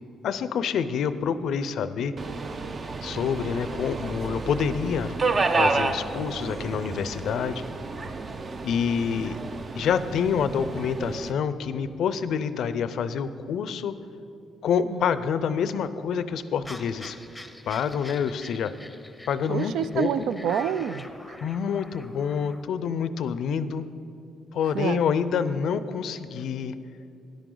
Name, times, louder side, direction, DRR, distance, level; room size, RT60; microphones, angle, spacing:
voice 1, 0.2-2.1 3.0-5.1 5.5-7.6 8.6-9.4 9.7-13.9 14.6-17.2 17.7-18.7 19.3-20.1 21.4-23.9 24.5-26.7, left 7 dB, 70° left, 13 dB, 0.5 m, -27 dB
Subway metro underground, 2.2-11.3, right 3 dB, 40° right, 0.6 m, -30 dB
sound 1, 16.6-22.6, left 1 dB, 10° left, 0.7 m, -45 dB
voice 2, 19.5-21.4 24.7-25.0, right 8 dB, 80° right, 14 dB, 0.3 m, -28 dB
13.0 x 10.5 x 3.9 m, 2.6 s
cardioid pair, 90°, 0 cm